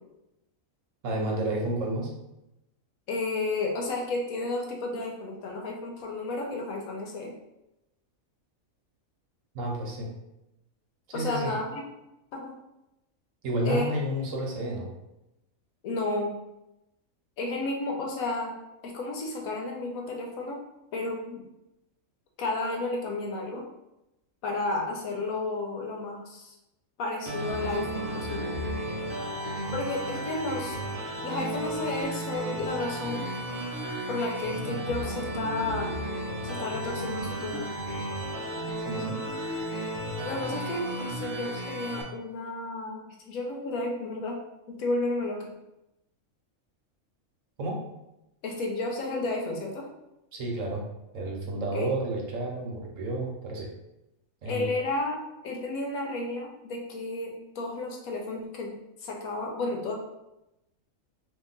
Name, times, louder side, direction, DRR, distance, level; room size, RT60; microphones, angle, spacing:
voice 1, 1.0-2.1 9.5-10.1 11.1-11.5 13.4-14.9 38.8-39.2 47.6-47.8 50.3-50.8 51.1-53.7 54.4-54.7, right 1 dB, 70° right, -1 dB, 1.1 m, -31 dB
voice 2, 3.1-7.3 11.1-11.8 12.3-12.5 13.6-13.9 15.8-16.4 17.4-18.5 18.8-20.6 20.9-21.4 22.4-23.6 24.4-26.6 27.0-28.5 29.7-33.3 34.1-35.9 36.4-37.7 40.2-44.4 44.7-45.5 48.4-49.9 51.7-51.9 54.5-58.7 59.0-59.9, left 2 dB, 85° left, 1 dB, 1.1 m, -32 dB
sound 1, 27.3-42.0, right 1 dB, 55° right, 0.6 m, -33 dB
2.8 x 2.5 x 3.8 m, 0.90 s
omnidirectional pair, 1.5 m